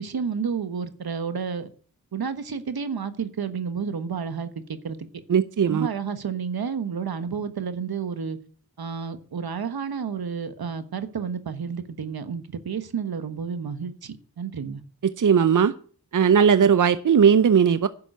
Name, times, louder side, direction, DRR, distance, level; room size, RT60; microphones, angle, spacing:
voice 1, 0.0-1.7 2.1-5.1 5.7-8.4 8.8-14.8, right 6 dB, 85° right, 1.3 m, -31 dB
voice 2, 5.3-5.9 15.2-15.7 16.1-17.9, right 7 dB, 60° right, 0.7 m, -18 dB
11.0 x 7.0 x 9.2 m
cardioid pair, 55°, 36 cm